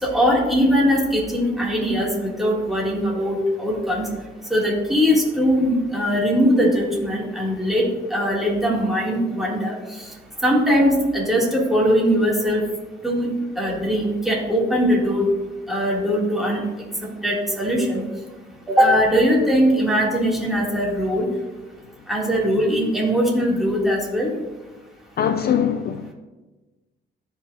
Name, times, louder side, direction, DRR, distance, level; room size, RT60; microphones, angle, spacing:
voice 1, 0.0-4.1 4.5-7.8 8.1-10.1 10.4-12.6 13.0-13.3 13.5-15.3 15.7-16.6 17.0-18.0 18.7-21.3 22.1-24.3, equal, ahead, -4 dB, 2.9 m, -20 dB
voice 2, 25.2-26.1, left 8 dB, 55° left, 9 dB, 0.5 m, -22 dB
13.5 x 5.5 x 2.8 m, 1.2 s
cardioid pair, 90°, 20 cm